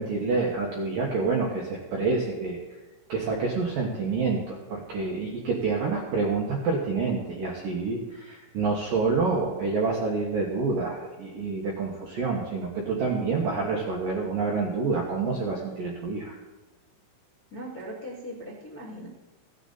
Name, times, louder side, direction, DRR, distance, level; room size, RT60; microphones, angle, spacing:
voice 1, 0.0-2.6 3.1-16.4, right 4 dB, 70° right, -2 dB, 2.1 m, -28 dB
voice 2, 17.5-19.1, equal, 50° left, -7 dB, 1.0 m, -39 dB
16.0 x 10.0 x 4.1 m, 1.2 s
omnidirectional pair, 5.8 m